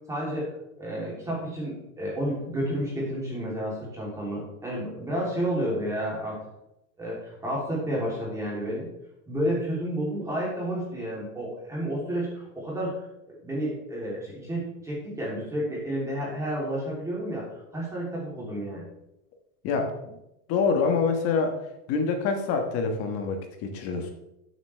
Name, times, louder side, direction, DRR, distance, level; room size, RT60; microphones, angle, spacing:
voice 1, 0.1-0.5 0.8-6.4 7.0-8.9 9.3-12.9 13.3-17.4 17.7-18.8, equal, 5° right, -5 dB, 3.2 m, -31 dB
voice 2, 19.6-20.2 20.5-21.5 21.9-24.1, left 5 dB, 30° left, 5 dB, 1.3 m, -26 dB
12.0 x 7.6 x 3.4 m, 0.87 s
supercardioid pair, 160°, 45 cm